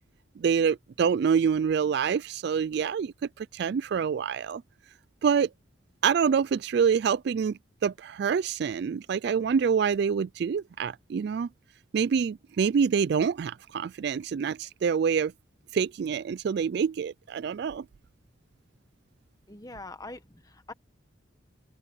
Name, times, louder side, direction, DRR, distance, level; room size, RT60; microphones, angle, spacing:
voice 1, 0.4-4.6 5.2-5.5 6.0-11.5 11.9-15.3 15.7-17.9, right 6 dB, 55° right, 0.3 m, -26 dB
voice 2, 19.5-20.7, left 2 dB, 20° left, 1.2 m, -43 dB
open air
head